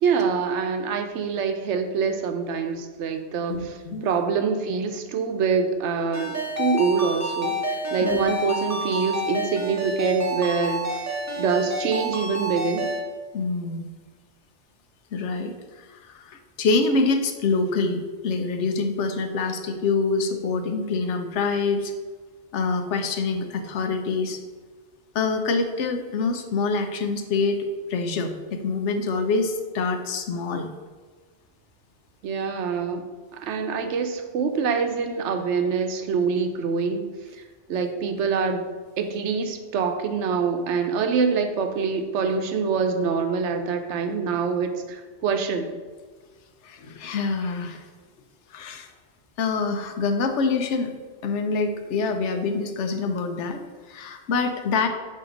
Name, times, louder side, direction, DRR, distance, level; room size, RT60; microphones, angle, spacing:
voice 1, 0.0-11.1 11.4-12.9 32.2-33.1 33.3-37.0 37.7-38.7 39.0-45.8, right 5 dB, 85° right, 7 dB, 1.0 m, -25 dB
voice 2, 3.5-4.1 8.0-8.2 13.3-13.9 15.1-21.9 22.5-24.4 25.1-27.6 27.9-30.7 46.6-47.9 48.5-48.9 49.4-50.9 51.2-53.6 53.9-54.9, left 4 dB, 85° left, 6 dB, 1.0 m, -26 dB
Ringtone, 6.1-13.0, right 1 dB, 15° right, 1.0 m, -29 dB
7.6 x 2.9 x 5.0 m, 1.4 s
omnidirectional pair, 1.2 m